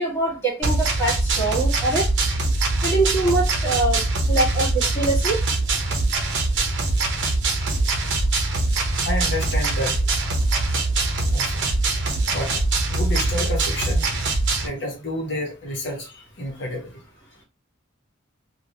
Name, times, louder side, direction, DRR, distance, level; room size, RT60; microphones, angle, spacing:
voice 1, 0.0-2.1 2.8-5.4, right 2 dB, 10° left, -5 dB, 1.6 m, -24 dB
sound 1, 0.6-14.7, right 2 dB, 60° right, 0.7 m, -22 dB
voice 2, 9.0-9.9 11.3-11.4 12.3-12.6 12.9-14.0 14.6-17.0, left 1 dB, 55° left, -1 dB, 1.0 m, -29 dB
3.1 x 2.4 x 2.7 m, 0.28 s
head